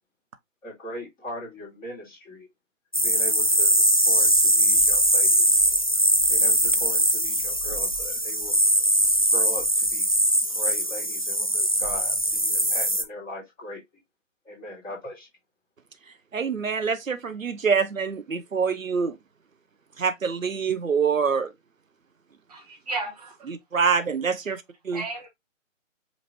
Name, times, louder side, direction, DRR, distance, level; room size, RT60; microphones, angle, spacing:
voice 1, 0.6-2.5 3.0-5.6 6.3-8.6 9.3-10.1 10.5-13.8 14.4-15.3, equal, 10° left, 2.0 m, -39 dB
sound 1, 2.9-13.0, right 1 dB, 30° left, 0.3 m, -21 dB
voice 2, 16.3-19.2 20.0-21.5 23.5-25.0, right 5 dB, 80° right, 0.8 m, -25 dB
voice 3, 22.5-23.5 24.9-25.3, right 3 dB, 30° right, 1.0 m, -34 dB
5.3 x 2.9 x 3.0 m
figure-of-eight pair, 140°, 39 cm